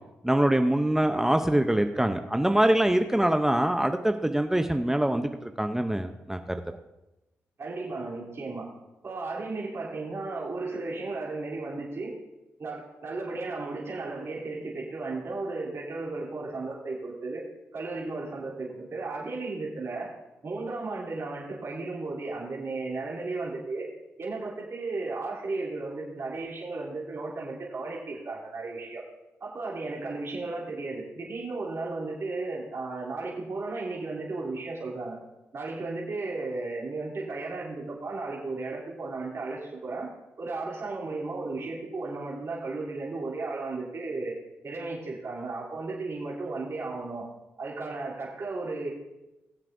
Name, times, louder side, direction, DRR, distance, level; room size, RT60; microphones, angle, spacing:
voice 1, 0.2-6.8, right 1 dB, 10° right, 7 dB, 0.6 m, -24 dB
voice 2, 7.6-8.7 9.0-12.1 12.6-17.4 17.7-20.1 20.4-23.9 24.2-29.0 29.4-35.2 35.5-40.1 40.4-44.3 44.6-47.2 47.6-48.9, right 3 dB, 55° right, -4 dB, 3.1 m, -34 dB
20.5 x 7.5 x 2.6 m, 0.98 s
supercardioid pair, 50°, 5 cm